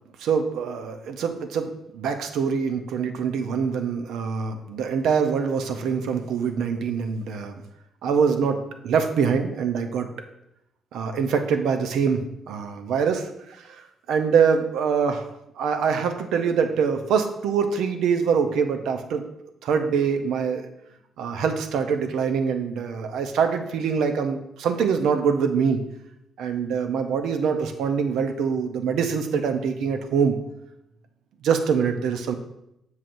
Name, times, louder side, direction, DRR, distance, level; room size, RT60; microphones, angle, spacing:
voice 1, 0.2-7.5 8.0-10.1 10.9-13.8 14.1-15.3 15.6-19.3 19.6-20.7 21.2-25.8 26.4-30.4 31.4-32.3, right 6 dB, 80° right, 7 dB, 0.6 m, -24 dB
7.5 x 5.6 x 2.6 m, 0.83 s
supercardioid pair, 70°, 0 cm